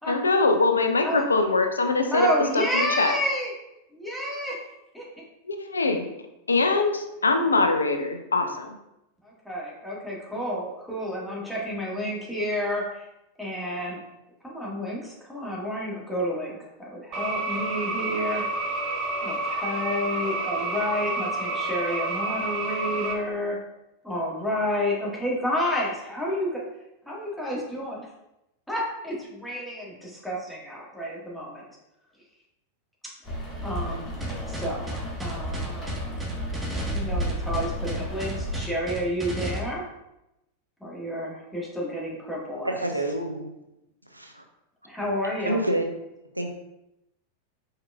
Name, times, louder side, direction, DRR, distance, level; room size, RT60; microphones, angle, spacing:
voice 1, 0.1-3.1 5.5-6.1 6.5-8.8, left 3 dB, 75° left, 6 dB, 0.4 m, -23 dB
voice 2, 2.1-3.5 3.9-4.6 4.9-5.0 9.2-13.1 13.4-14.0 14.4-18.4 19.2-23.6 24.0-26.6 27.1-28.1 28.7-31.6 33.6-34.1 34.5-36.3 36.9-39.8 40.8-42.8 44.8-45.6, equal, ahead, -5 dB, 1.4 m, -30 dB
sound 1, 17.1-23.1, right 2 dB, 35° right, 0.9 m, -29 dB
Rain, 33.2-38.6, equal, 30° left, 1.4 m, -32 dB
sound 2, 34.2-39.6, right 2 dB, 15° right, 1.1 m, -34 dB
voice 3, 42.6-43.5 44.1-44.4 45.4-45.9 46.3-46.5, right 1 dB, 85° right, 4 dB, 0.5 m, -27 dB
4.6 x 4.5 x 2.2 m, 0.89 s
figure-of-eight pair, 90°, 0 cm